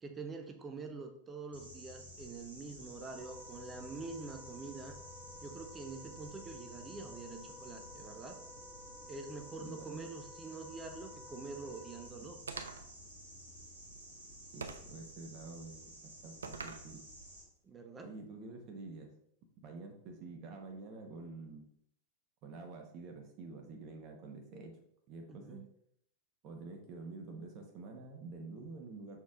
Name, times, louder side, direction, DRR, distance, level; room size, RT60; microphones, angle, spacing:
voice 1, 0.0-5.0 5.4-8.4 9.1-12.4 17.6-18.1 25.3-25.7, right 3 dB, 20° right, 4 dB, 0.8 m, -46 dB
sound 1, 1.5-17.4, equal, 90° left, 2.2 m, -52 dB
Wind instrument woodwind instrument, 3.1-12.1, left 2 dB, 15° left, 0.3 m, -55 dB
voice 2, 9.6-10.1 14.5-17.1 18.0-19.1 19.6-21.7 22.4-24.8 25.1-25.6 26.4-29.2, right 3 dB, 40° right, 3 dB, 1.3 m, -48 dB
sound 2, 12.5-13.0 14.6-15.0 16.4-16.9, right 4 dB, 70° right, 0.6 m, -43 dB
6.4 x 4.5 x 3.7 m, 0.71 s
figure-of-eight pair, 90°, 0 cm